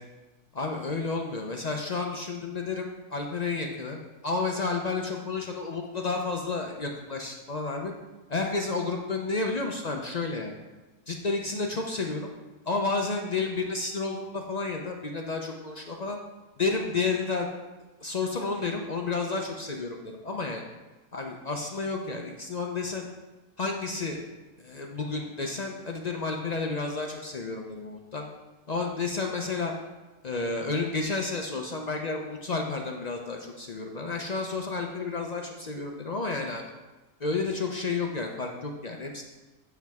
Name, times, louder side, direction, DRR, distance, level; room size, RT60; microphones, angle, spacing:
voice 1, 0.5-7.9 8.3-10.6 11.1-12.3 12.6-16.2 16.6-17.5 18.0-20.7 21.1-23.1 23.6-24.2 24.6-28.3 28.7-29.7 30.2-36.7 37.2-39.2, left 3 dB, 65° left, 2 dB, 0.4 m, -31 dB
7.9 x 7.4 x 3.5 m, 1.1 s
omnidirectional pair, 1.7 m